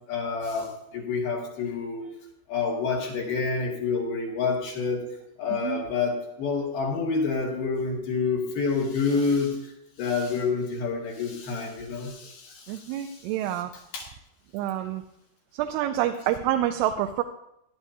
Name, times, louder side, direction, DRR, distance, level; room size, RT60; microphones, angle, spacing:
voice 1, 0.1-2.1 2.5-5.0 5.4-9.7 10.0-13.2 13.5-13.6 13.9-14.0, left 4 dB, 70° left, -3 dB, 3.9 m, -28 dB
voice 2, 5.5-5.9 12.7-13.7 14.5-15.0 15.5-17.2, right 12 dB, 80° right, 6 dB, 2.5 m, -27 dB
17.5 x 11.5 x 2.7 m, 0.79 s
omnidirectional pair, 4.7 m